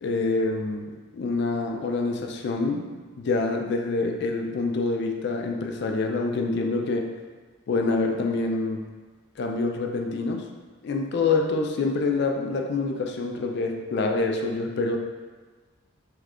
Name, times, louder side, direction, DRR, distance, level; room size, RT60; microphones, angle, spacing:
voice 1, 0.0-7.1 7.7-8.8 9.4-10.5 10.8-15.0, left 3 dB, 55° left, 3 dB, 0.3 m, -26 dB
3.1 x 2.4 x 3.4 m, 1.3 s
head